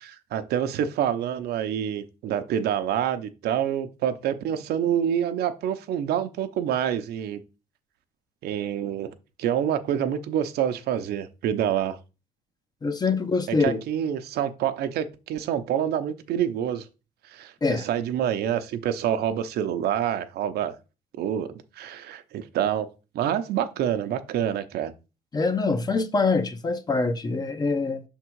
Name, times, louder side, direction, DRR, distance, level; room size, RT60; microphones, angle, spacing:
voice 1, 0.0-7.4 8.4-12.0 13.6-16.9 17.3-20.8 21.2-22.9 23.1-24.9, right 9 dB, 70° right, 0.7 m, -27 dB
voice 2, 12.8-13.8 17.6-17.9 25.3-28.0, left 4 dB, 25° left, 0.7 m, -24 dB
6.0 x 3.6 x 4.6 m
cardioid pair, 110°, 17 cm